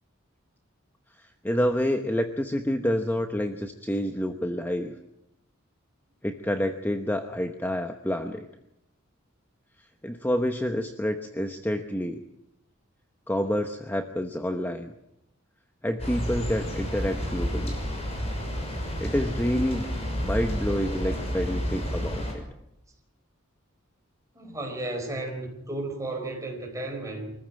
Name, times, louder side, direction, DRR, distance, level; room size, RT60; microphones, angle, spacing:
voice 1, 1.2-5.0 6.2-8.5 10.0-12.2 13.3-14.9 15.8-17.8 19.0-19.9 20.2-22.4, equal, 10° left, 6 dB, 0.9 m, -28 dB
sound 1, 16.0-22.3, equal, 30° left, 6.3 m, -30 dB
voice 2, 24.3-27.3, right 2 dB, 15° right, 2 dB, 4.7 m, -33 dB
24.5 x 14.5 x 8.9 m, 0.84 s
head